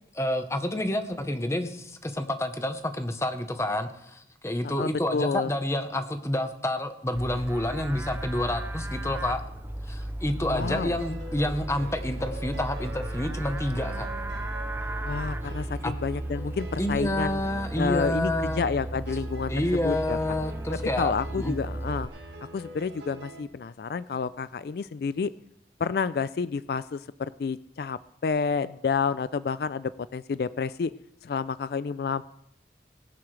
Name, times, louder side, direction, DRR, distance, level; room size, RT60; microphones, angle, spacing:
voice 1, 0.1-9.4 9.9-14.1 15.8-15.9 16.8-18.7 19.5-21.6, left 1 dB, 15° left, 8 dB, 0.9 m, -29 dB
voice 2, 4.6-5.5 10.4-11.0 15.0-17.4 17.8-19.5 19.8-20.2 21.0-22.1 22.5-25.3 25.8-30.9 31.2-32.2, left 5 dB, 60° left, 16 dB, 0.3 m, -29 dB
Livestock farm animals working animals, 7.1-22.1, right 1 dB, 10° right, 0.5 m, -35 dB
sound 1, 10.5-23.4, right 1 dB, 80° right, 1.7 m, -45 dB
19.5 x 10.5 x 3.3 m, 0.77 s
head